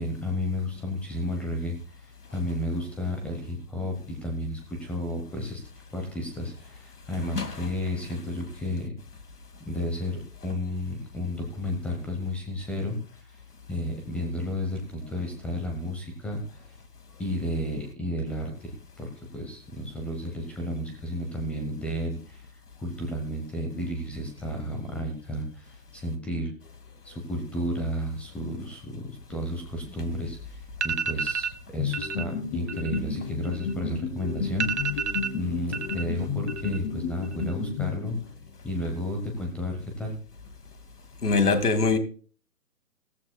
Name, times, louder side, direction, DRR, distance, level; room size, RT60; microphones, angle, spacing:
voice 1, 0.0-5.6 5.9-8.9 9.6-13.4 13.7-16.8 17.2-22.5 22.8-26.5 27.0-38.2 38.6-40.2, left 1 dB, 5° left, 0.9 m, -32 dB
sound 1, 30.3-30.4 30.7-31.6 31.9-32.2 32.6-34.0 34.3-34.4 34.6-36.0 36.3-36.9 37.2-37.8, right 6 dB, 45° right, 1.1 m, -31 dB
sound 2, 31.8-38.5, left 6 dB, 30° left, 2.4 m, -32 dB
voice 2, 41.2-42.0, left 4 dB, 75° left, 2.2 m, -22 dB
17.0 x 14.5 x 2.2 m
figure-of-eight pair, 140°, 46 cm